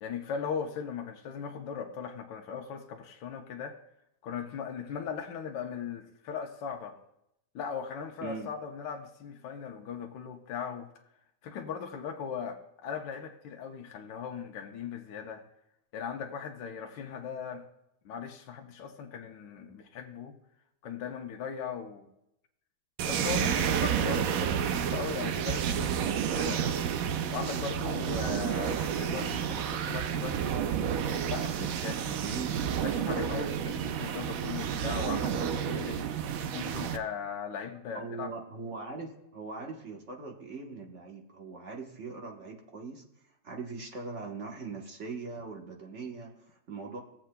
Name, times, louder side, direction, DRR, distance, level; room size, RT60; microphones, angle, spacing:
voice 1, 0.0-3.8 4.2-7.0 7.5-10.9 11.4-15.4 15.9-17.6 18.0-20.3 20.8-22.1 23.1-26.6 27.3-30.8 31.3-32.3 32.8-36.0 36.5-38.3, left 7 dB, 80° left, 3 dB, 1.5 m, -38 dB
voice 2, 8.2-8.5 32.2-32.7 37.9-43.1 43.4-47.0, right 4 dB, 45° right, 1 dB, 1.3 m, -41 dB
sound 1, 23.0-37.0, right 8 dB, 70° right, 0.8 m, -30 dB
17.5 x 7.4 x 2.2 m, 0.81 s
omnidirectional pair, 1.9 m